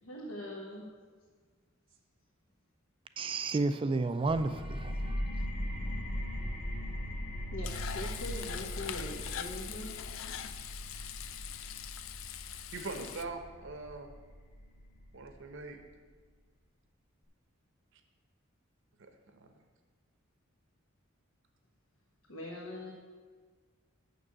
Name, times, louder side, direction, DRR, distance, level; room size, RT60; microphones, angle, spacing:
voice 1, 0.0-0.8 7.5-9.9 22.3-22.9, left 1 dB, 85° left, -3 dB, 1.3 m, -42 dB
voice 2, 3.2-5.3, right 3 dB, 25° right, 10 dB, 0.3 m, -32 dB
sound 1, 4.3-15.7, equal, 30° left, 1.0 m, -39 dB
Frying (food), 7.6-13.2, left 10 dB, 70° left, 0.4 m, -42 dB
voice 3, 12.5-14.1 15.1-15.8 19.0-19.5, right 3 dB, 65° right, 6 dB, 0.8 m, -42 dB
6.7 x 6.1 x 7.4 m, 1.5 s
head